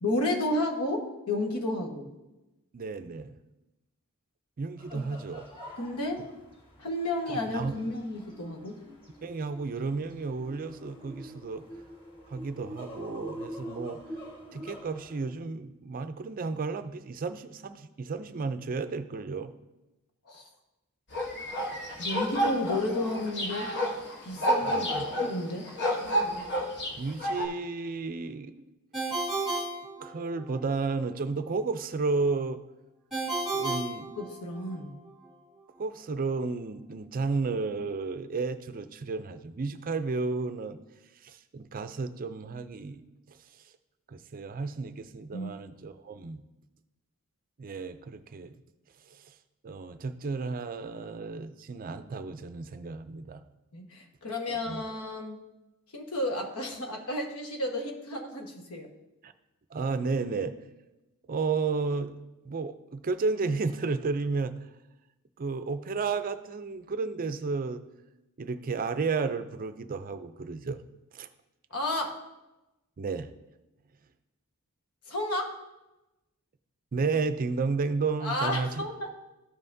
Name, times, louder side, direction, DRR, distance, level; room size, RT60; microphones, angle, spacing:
voice 1, 0.0-2.1 4.9-5.0 5.8-6.2 6.8-8.7 20.3-20.4 22.0-23.7 24.2-24.9 25.2-25.7 34.2-34.9 45.3-45.5 53.7-55.4 55.9-58.9 71.7-72.2 75.1-75.5 78.2-79.1, left 1 dB, 80° left, 2 dB, 1.4 m, -32 dB
voice 2, 2.7-3.4 4.6-5.5 7.3-7.8 9.2-11.6 12.3-14.0 14.5-19.5 24.6-25.1 27.0-28.7 30.0-32.6 33.5-34.1 35.8-40.8 41.2-43.0 43.3-43.4 44.1-46.4 47.6-48.6 49.1-49.2 49.6-53.4 54.5-54.8 59.2-59.3 59.7-60.5 61.3-62.2 62.4-64.6 65.4-67.8 68.4-70.8 71.1-71.3 73.0-73.3 76.9-78.8, right 4 dB, 40° right, 11 dB, 0.4 m, -32 dB
sound 1, 4.8-15.3, equal, 25° left, 1.5 m, -45 dB
sound 2, 21.1-27.5, equal, 50° left, 1.2 m, -30 dB
Ringtone, 28.9-30.6 33.1-34.8, right 2 dB, ahead, 1.7 m, -33 dB
13.5 x 5.6 x 2.7 m, 0.99 s
head